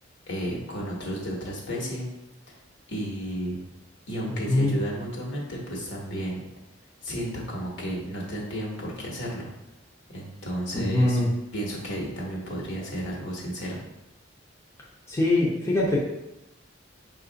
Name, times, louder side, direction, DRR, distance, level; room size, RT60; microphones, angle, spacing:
voice 1, 0.3-2.1 2.5-2.6 2.9-3.6 4.1-6.5 7.0-9.5 10.1-11.2 11.5-13.8, equal, 65° left, -2 dB, 1.2 m, -33 dB
voice 2, 4.3-4.8 10.7-11.3 15.1-16.0, left 2 dB, 15° left, -5 dB, 0.7 m, -23 dB
5.3 x 2.5 x 3.9 m, 0.90 s
head